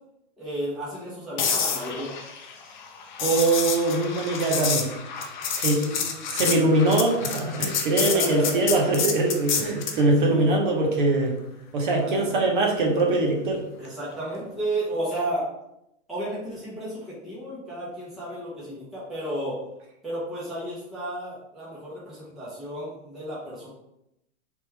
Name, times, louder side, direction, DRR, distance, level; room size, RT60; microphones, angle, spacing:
voice 1, 0.4-2.1 5.6-6.2 6.8-7.2 7.9-8.7 10.2-10.6 11.9-12.3 13.8-15.4 16.1-19.6 20.0-23.7, right 1 dB, ahead, -10 dB, 0.8 m, -33 dB
sound 1, 1.4-10.0 14.2-14.5, left 6 dB, 40° left, 0.6 m, -29 dB
voice 2, 3.2-4.9 5.5-5.8 6.3-11.3 11.7-13.6, right 2 dB, 45° right, 0 dB, 1.1 m, -22 dB
4.1 x 3.6 x 3.3 m, 0.83 s
hypercardioid pair, 160°, 37 cm